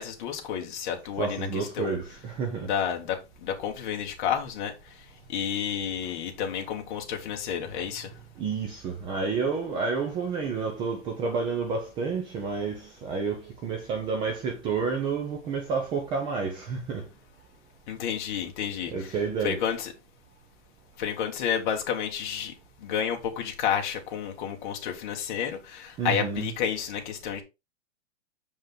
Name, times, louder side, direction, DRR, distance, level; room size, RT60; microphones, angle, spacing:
voice 1, 0.0-2.0 2.6-8.1 17.9-19.9 21.0-27.4, left 8 dB, 40° left, 1.9 m, -31 dB
voice 2, 1.2-2.7 8.4-17.0 18.9-19.6 26.0-26.5, right 5 dB, 15° right, 0.6 m, -30 dB
7.3 x 5.2 x 3.8 m
supercardioid pair, 165°, 36 cm